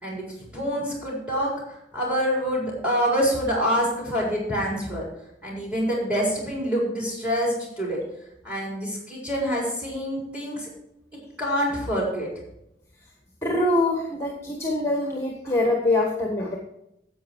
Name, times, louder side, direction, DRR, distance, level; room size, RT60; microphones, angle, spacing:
voice 1, 0.0-5.1 5.4-8.0 8.4-10.7 11.4-12.4, equal, 5° right, -3 dB, 4.6 m, -26 dB
voice 2, 13.4-16.6, left 2 dB, 15° left, 1 dB, 1.3 m, -24 dB
10.5 x 8.1 x 4.6 m, 0.80 s
head